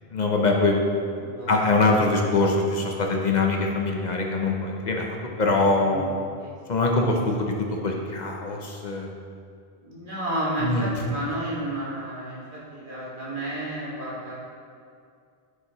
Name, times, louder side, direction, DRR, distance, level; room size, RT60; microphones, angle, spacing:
voice 1, 0.1-0.8 1.5-6.1 6.7-7.6 7.8-9.1 10.6-10.9, left 3 dB, 50° left, 1 dB, 0.8 m, -23 dB
voice 2, 1.0-1.6 5.8-6.1 6.4-6.5 9.8-14.3, right 1 dB, 55° right, -8 dB, 2.1 m, -31 dB
8.3 x 5.8 x 3.0 m, 2.3 s
omnidirectional pair, 1.1 m